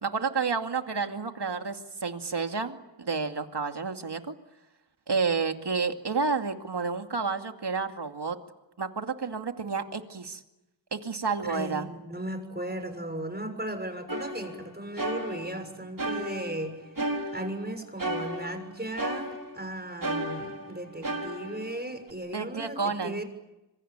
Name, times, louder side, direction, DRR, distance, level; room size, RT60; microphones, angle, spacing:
voice 1, 0.0-4.4 5.1-8.4 8.8-10.4 10.9-11.9 22.3-23.2, right 5 dB, 65° right, 6 dB, 2.5 m, -30 dB
voice 2, 11.5-16.9 17.3-23.2, right 1 dB, 20° right, 8 dB, 6.6 m, -36 dB
sound 1, 14.1-15.7 16.0-17.7 18.0-19.7 20.0-22.1, right 1 dB, 45° right, 3.8 m, -34 dB
26.5 x 24.0 x 9.0 m, 0.95 s
cardioid pair, 45°, 44 cm